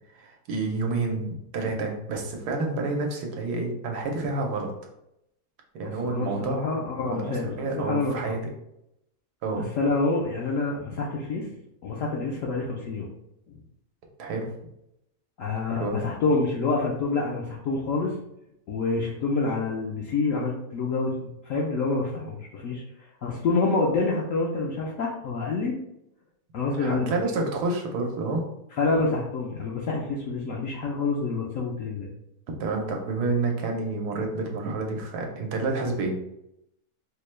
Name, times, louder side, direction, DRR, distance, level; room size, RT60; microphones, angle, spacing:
voice 1, 0.1-4.7 5.8-8.4 9.4-9.6 14.2-14.5 15.6-16.0 26.8-28.4 32.5-36.1, right 3 dB, 90° right, 2 dB, 1.3 m, -29 dB
voice 2, 5.8-8.3 9.5-11.5 11.8-13.1 13.5-13.6 15.4-18.1 18.7-22.8 23.2-25.8 26.5-27.1 28.8-32.1, left 3 dB, 70° left, -3 dB, 0.8 m, -27 dB
4.4 x 2.1 x 3.1 m, 0.82 s
omnidirectional pair, 1.7 m